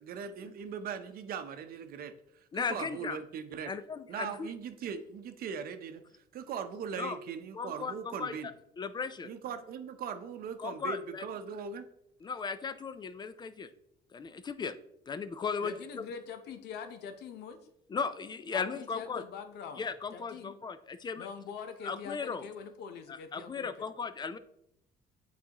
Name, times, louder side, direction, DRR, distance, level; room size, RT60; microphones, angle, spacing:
voice 1, 0.0-2.1 2.5-3.7 4.1-8.5 9.2-11.9, right 7 dB, 60° right, 8 dB, 0.7 m, -40 dB
voice 2, 2.5-3.2 3.7-4.5 7.0-7.2 7.5-8.4 8.8-9.3 10.6-11.2 12.2-13.7 14.1-14.7 15.1-16.0 17.9-19.2 19.8-21.3 21.8-22.5 23.1-24.4, left 5 dB, 25° left, 13 dB, 0.4 m, -36 dB
voice 3, 15.6-17.6 18.5-19.9 20.1-20.5 21.2-23.9, left 6 dB, 80° left, 8 dB, 0.8 m, -43 dB
8.4 x 4.0 x 2.9 m, 0.78 s
cardioid pair, 110°, 17 cm